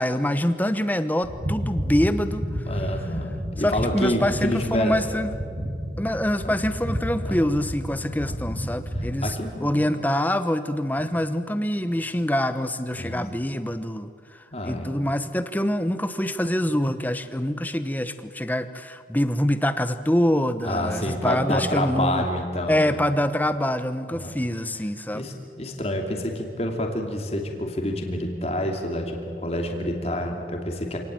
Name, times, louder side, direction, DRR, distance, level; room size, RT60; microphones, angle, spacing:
voice 1, 0.0-2.7 3.6-5.3 6.0-22.2 22.7-25.3, left 1 dB, 10° left, 11 dB, 0.9 m, -25 dB
sound 1, 1.2-9.3, equal, 35° right, 2.5 m, -31 dB
voice 2, 2.7-5.0 6.4-6.6 7.2-7.5 8.2-8.4 9.2-9.9 12.9-13.2 14.5-15.0 20.6-23.0 24.1-24.4 25.1-31.0, left 1 dB, 35° left, 3 dB, 2.7 m, -28 dB
27.0 x 18.5 x 9.1 m, 2.3 s
head